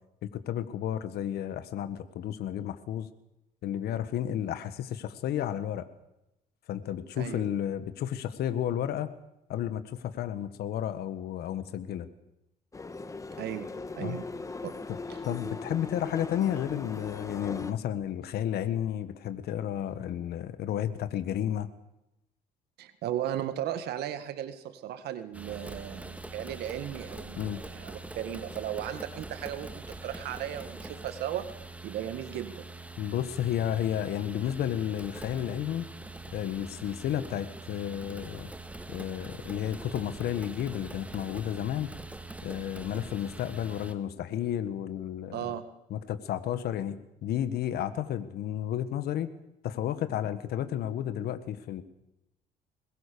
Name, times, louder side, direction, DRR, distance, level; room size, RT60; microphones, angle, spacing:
voice 1, 0.2-3.1 3.6-5.9 6.7-9.1 9.5-12.1 14.0-14.2 14.9-15.0 15.2-21.7 27.3-27.6 33.0-35.8 36.3-38.5 38.9-41.9 42.4-45.5 45.9-49.3 49.6-51.8, left 10 dB, 70° left, 11 dB, 1.6 m, -32 dB
voice 2, 7.2-7.5 13.4-13.7 13.9-14.2 14.6-14.8 15.1-15.2 22.8-31.5 31.8-32.6 45.3-45.7, right 11 dB, 75° right, 10 dB, 1.8 m, -36 dB
sound 1, 12.7-17.7, left 3 dB, 20° left, 1.6 m, -39 dB
sound 2, 25.3-43.9, right 2 dB, 10° right, 2.0 m, -43 dB
22.5 x 20.5 x 7.0 m, 0.90 s
cardioid pair, 110°, 17 cm